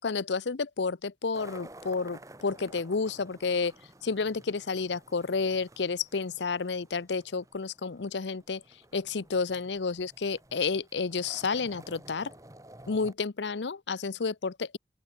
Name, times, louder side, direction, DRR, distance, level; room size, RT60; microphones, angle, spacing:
voice 1, 0.0-3.7 4.0-8.6 8.9-12.3 12.9-14.8, left 4 dB, 85° left, 0.7 m, -31 dB
sound 1, 1.3-13.1, right 1 dB, 20° right, 2.2 m, -52 dB
open air
head